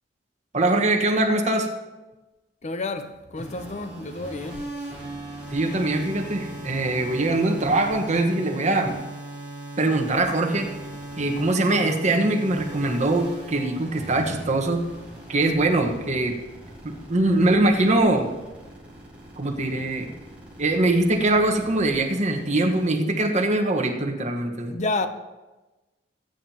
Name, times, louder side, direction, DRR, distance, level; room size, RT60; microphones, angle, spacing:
voice 1, 0.5-1.7 5.5-9.0 9.8-10.7 11.2-14.8 15.3-16.3 16.8-18.3 19.4-20.1 20.6-24.7, right 2 dB, 40° right, 1.3 m, -22 dB
voice 2, 2.6-4.6 24.7-25.1, left 2 dB, 40° left, 0.6 m, -30 dB
sound 1, 3.4-22.8, right 1 dB, 5° right, 4.5 m, -39 dB
19.5 x 9.0 x 2.9 m
head